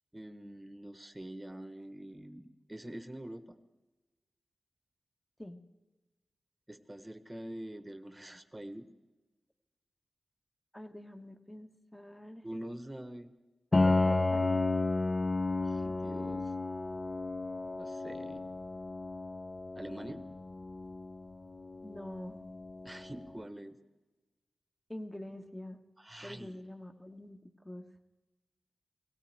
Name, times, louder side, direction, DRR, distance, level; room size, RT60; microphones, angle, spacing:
voice 1, 0.1-3.6 6.7-8.9 12.4-13.3 15.6-16.5 17.8-18.5 19.8-20.3 22.8-23.8 26.0-26.6, right 1 dB, 15° right, 9 dB, 1.2 m, -45 dB
voice 2, 10.7-12.5 13.7-14.7 21.8-22.4 24.9-25.8 26.2-27.9, left 1 dB, 10° left, 4 dB, 1.4 m, -45 dB
Piano, 13.7-23.3, left 2 dB, 40° left, 0.5 m, -33 dB
18.0 x 16.0 x 3.5 m, 1.2 s
cardioid pair, 50°, 0 cm